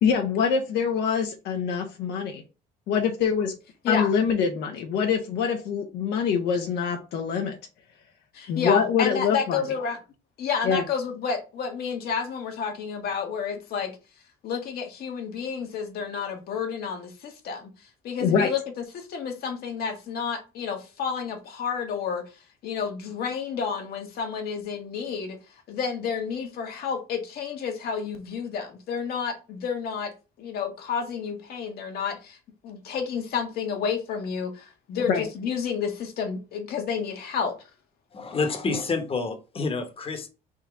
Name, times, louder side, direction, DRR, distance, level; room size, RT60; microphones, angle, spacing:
voice 1, 0.0-2.4 2.9-3.5 3.9-7.6 8.5-9.6 10.6-10.8 18.2-18.5 35.1-35.2, left 6 dB, 80° left, 0.9 m, -24 dB
voice 2, 8.3-10.0 10.4-14.0 14.4-17.7 18.0-22.2 22.6-25.4 25.7-32.4 32.6-37.6, left 6 dB, 65° left, 1.2 m, -30 dB
voice 3, 38.1-40.3, left 4 dB, 35° left, 1.1 m, -28 dB
3.8 x 2.8 x 4.6 m
cardioid pair, 110°, 17 cm